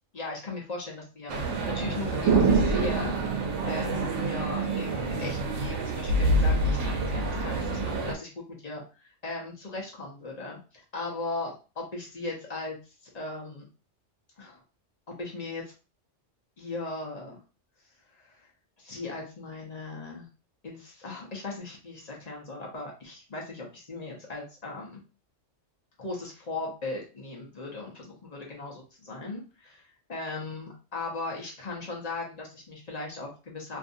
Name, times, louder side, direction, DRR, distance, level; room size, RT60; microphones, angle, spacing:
voice 1, 0.1-12.8 13.1-13.6 14.4-14.6 15.1-15.6 16.6-17.4 18.1-18.5 18.8-20.3 20.6-25.0 26.0-29.8 30.1-33.8, left 2 dB, 40° left, -2 dB, 0.7 m, -38 dB
sound 1, 1.3-8.1, right 3 dB, 75° right, 0.9 m, -26 dB
2.6 x 2.5 x 2.6 m, 0.33 s
omnidirectional pair, 1.3 m